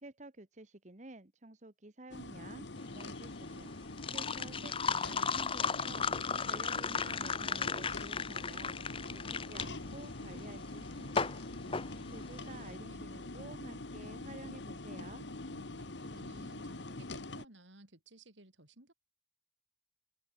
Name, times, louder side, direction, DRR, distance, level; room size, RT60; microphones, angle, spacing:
voice 1, 0.0-2.7 2.9-3.7 4.1-6.1 6.4-8.7 9.1-11.4 12.1-15.3, right 2 dB, 40° right, 1.5 m, -51 dB
sound 1, 2.1-17.5, left 2 dB, 70° left, 1.6 m, -44 dB
sound 2, 2.8-12.7, left 5 dB, 30° left, 1.0 m, -36 dB
voice 2, 11.5-13.1 15.5-18.9, right 1 dB, 85° right, 5.9 m, -58 dB
open air
head